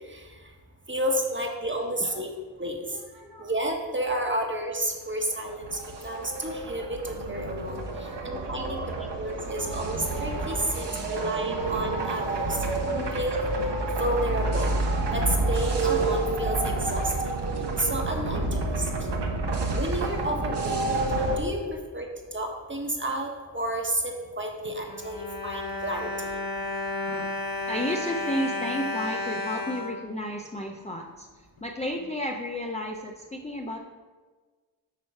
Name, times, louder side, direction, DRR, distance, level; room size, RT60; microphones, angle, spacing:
voice 1, 0.1-0.4 0.9-2.3 2.6-3.0 3.4-12.6 13.1-13.4 14.0-14.8 15.1-17.3 17.8-19.2 19.7-21.0 21.4-26.3, right 1 dB, 25° right, 2 dB, 1.4 m, -31 dB
voice 2, 3.1-3.5 7.9-9.1 9.5-9.7 10.5-11.1 11.5-11.6 12.7-13.2 17.6-17.7 27.7-33.8, equal, 15° left, 1 dB, 0.6 m, -34 dB
sound 1, 5.3-21.4, right 2 dB, 55° right, 1.2 m, -29 dB
Bowed string instrument, 24.6-30.9 31.6-31.7 32.0-32.1, left 2 dB, 45° left, 0.8 m, -33 dB
8.7 x 3.1 x 5.7 m, 1.4 s
cardioid pair, 45°, 49 cm